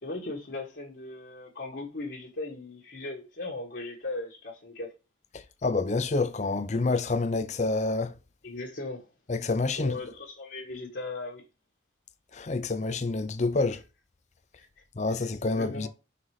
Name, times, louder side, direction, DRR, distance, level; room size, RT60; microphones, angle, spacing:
voice 1, 0.0-4.9 8.4-9.1 9.7-11.4 14.6-14.7 15.1-15.9, left 2 dB, 65° left, 1.4 m, -38 dB
voice 2, 5.6-8.1 9.3-9.9 12.3-13.8 15.0-15.9, left 3 dB, 40° left, 0.5 m, -27 dB
5.7 x 3.9 x 4.7 m
head